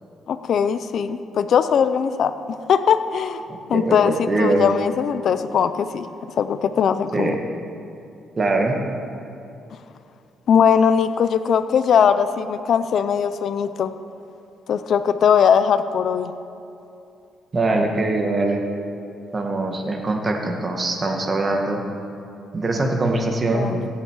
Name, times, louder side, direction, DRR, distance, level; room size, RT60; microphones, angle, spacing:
voice 1, 0.3-3.4 3.7-6.1 6.4-7.4 10.5-13.9 14.7-16.3 23.5-23.9, left 7 dB, 60° left, 12 dB, 0.5 m, -20 dB
voice 2, 3.5-4.6 7.1-7.4 8.4-8.8 17.5-18.6 19.3-21.8 22.5-23.7, right 2 dB, 35° right, 2 dB, 1.7 m, -22 dB
16.0 x 8.1 x 4.7 m, 2.6 s
cardioid pair, 90°, 0 cm